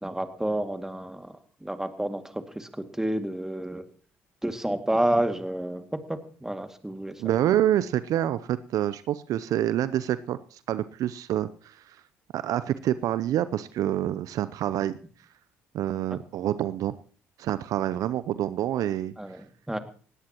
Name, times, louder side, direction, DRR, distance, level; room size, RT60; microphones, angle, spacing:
voice 1, 0.0-1.3 1.6-3.9 4.4-7.1 19.2-19.4 19.7-19.8, right 1 dB, 5° right, 7 dB, 2.3 m, -29 dB
voice 2, 7.2-12.0 12.3-15.0 15.7-16.9 17.4-19.1, right 12 dB, 60° right, 15 dB, 0.6 m, -27 dB
19.5 x 17.0 x 3.0 m, 0.41 s
hypercardioid pair, 55°, 7 cm